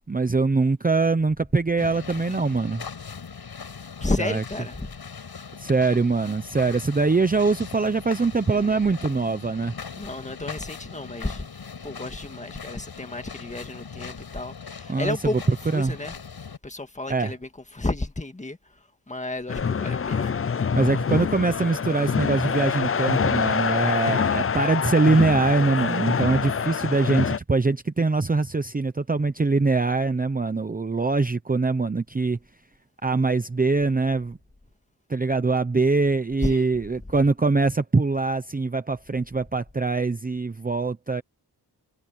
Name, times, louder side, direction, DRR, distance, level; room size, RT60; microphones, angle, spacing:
voice 1, 0.1-2.8 4.2-4.4 5.6-9.7 14.9-15.4 15.7-15.9 17.1-17.3 20.7-32.4 33.0-34.4 35.1-41.2, right 3 dB, 20° right, 0.8 m, -23 dB
sound 1, 1.8-16.6, left 6 dB, 65° left, 7.7 m, -40 dB
voice 2, 4.0-4.9 8.5-8.8 9.9-11.5 11.8-16.1 16.6-18.6 19.1-20.4 36.4-36.7, left 2 dB, 15° left, 1.9 m, -32 dB
sound 2, 19.5-27.4, left 6 dB, 35° left, 0.6 m, -25 dB
wide cardioid pair, 150°, 41 cm